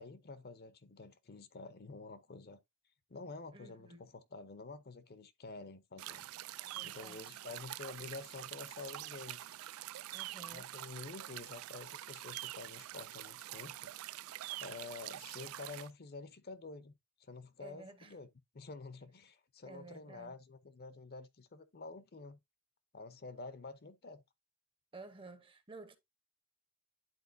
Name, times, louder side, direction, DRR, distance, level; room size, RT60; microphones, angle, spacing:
voice 1, 0.0-2.6 3.1-6.2 6.8-9.5 10.5-13.9 14.6-16.9 17.2-18.3 18.5-22.4 22.9-24.2, left 3 dB, 50° left, 0.7 m, -49 dB
voice 2, 3.5-4.1 6.6-7.4 10.1-10.7 17.6-18.2 19.6-20.4 24.9-26.0, right 3 dB, 25° right, 0.8 m, -53 dB
sound 1, 6.0-15.9, right 14 dB, 80° right, 0.3 m, -46 dB
10.5 x 4.2 x 2.6 m
head